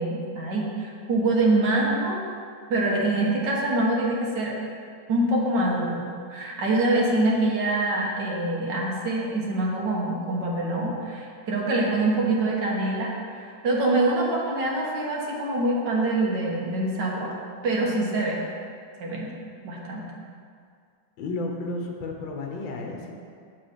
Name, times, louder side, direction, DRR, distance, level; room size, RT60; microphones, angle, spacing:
voice 1, 0.0-2.2 2.7-4.5 5.1-6.0 6.3-17.3 17.6-18.4 19.0-19.3 19.6-20.1, right 2 dB, 65° right, -3 dB, 1.9 m, -25 dB
voice 2, 21.2-23.1, left 2 dB, 80° left, 1 dB, 1.7 m, -32 dB
7.4 x 6.5 x 5.1 m, 2.2 s
omnidirectional pair, 2.1 m